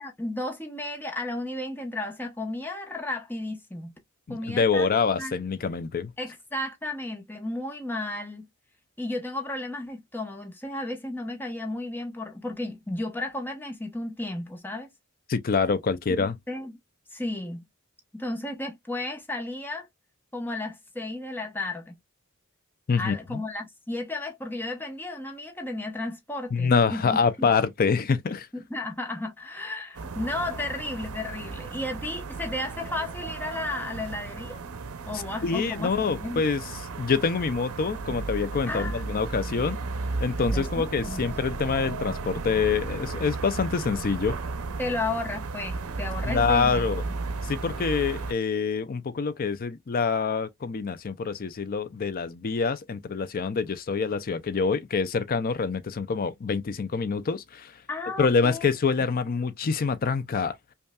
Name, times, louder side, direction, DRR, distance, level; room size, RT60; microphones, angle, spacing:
voice 1, 0.0-3.9 4.3-4.9 5.2-5.4 6.2-8.5 9.0-14.9 16.2-16.8 17.1-17.6 18.1-19.9 20.3-21.9 23.0-27.5 28.5-34.6 35.0-36.4 38.7-39.0 40.5-41.2 44.8-47.2 57.9-58.7, left 2 dB, 10° left, 1.0 m, -33 dB
voice 2, 4.3-6.1 15.3-16.4 22.9-23.4 26.5-28.5 35.4-36.6 37.0-39.8 40.2-44.4 46.3-47.0 47.4-57.7 58.2-60.6, left 5 dB, 45° left, 0.5 m, -26 dB
sound 1, 29.9-48.3, right 3 dB, 80° right, 0.6 m, -34 dB
5.3 x 2.4 x 2.3 m
head